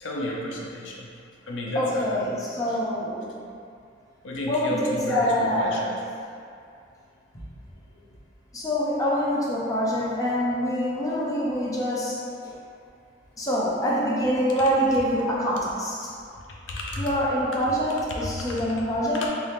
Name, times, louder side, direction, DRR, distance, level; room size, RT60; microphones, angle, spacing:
voice 1, 0.0-1.1 1.5-2.2 4.2-5.9 16.7-17.1, left 1 dB, 80° left, -2 dB, 0.5 m, -31 dB
voice 2, 1.7-3.3 4.5-5.9 8.5-12.5 13.4-16.1 17.0-19.3, equal, 20° left, -6 dB, 0.5 m, -25 dB
3.6 x 2.8 x 3.4 m, 2.3 s
head